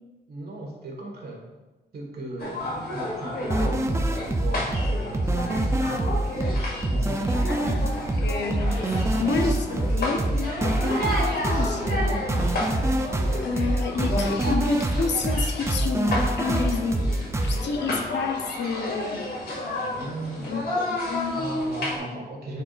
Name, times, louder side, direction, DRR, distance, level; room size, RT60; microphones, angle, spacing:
voice 1, 0.3-1.4 1.9-5.7 6.9-7.3 9.1-9.4 19.9-20.6 21.3-22.6, right 2 dB, 65° right, -1 dB, 1.6 m, -37 dB
sound 1, 2.4-22.0, left 1 dB, 65° left, 2.0 m, -31 dB
sound 2, 3.5-17.6, right 1 dB, 15° right, 0.5 m, -25 dB
voice 2, 6.9-7.8 8.2-10.2 11.5-12.4 13.4-17.0 17.4-19.2 20.4-20.6 20.9-21.4 22.1-22.2, left 4 dB, 85° left, 5 dB, 0.8 m, -30 dB
9.8 x 4.7 x 2.5 m, 1.2 s
wide cardioid pair, 125°, 18 cm